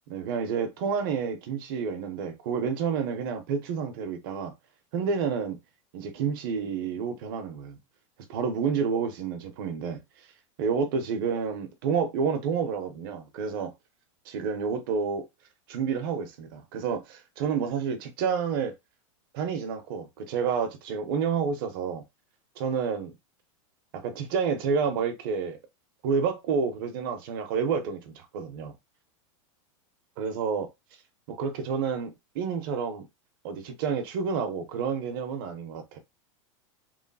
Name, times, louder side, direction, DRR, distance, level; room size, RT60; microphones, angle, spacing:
voice 1, 0.1-4.5 4.9-5.6 5.9-7.8 8.3-10.0 10.6-13.7 14.3-15.3 15.7-18.7 19.3-22.0 22.6-23.1 23.9-25.6 26.0-28.7 30.2-30.7 31.3-33.1 33.4-36.0, right 6 dB, 40° right, 0.6 m, -29 dB
3.1 x 2.6 x 2.2 m
supercardioid pair, 175°, 17 cm